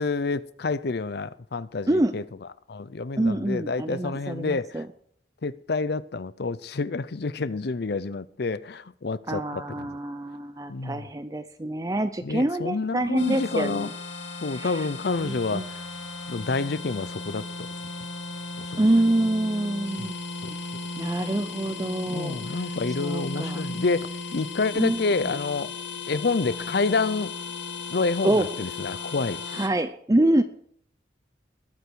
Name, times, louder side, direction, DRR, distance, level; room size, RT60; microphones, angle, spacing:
voice 1, 0.0-2.2 2.7-4.8 5.4-9.9 10.7-11.0 12.2-13.9 14.4-15.7 16.3-17.7 18.6-18.8 20.0-20.1 20.4-20.5 22.1-25.7 26.1-27.3 27.9-29.4, left 3 dB, 60° left, 0.6 m, -28 dB
voice 2, 3.2-4.9 9.3-13.9 14.5-14.9 15.2-15.7 18.8-20.2 21.0-22.7 23.0-23.6 24.8-25.4 28.2-28.5 29.5-30.4, right 1 dB, 20° right, 0.6 m, -26 dB
sound 1, 13.2-29.7, left 3 dB, 80° left, 2.1 m, -36 dB
20.5 x 8.3 x 4.6 m
head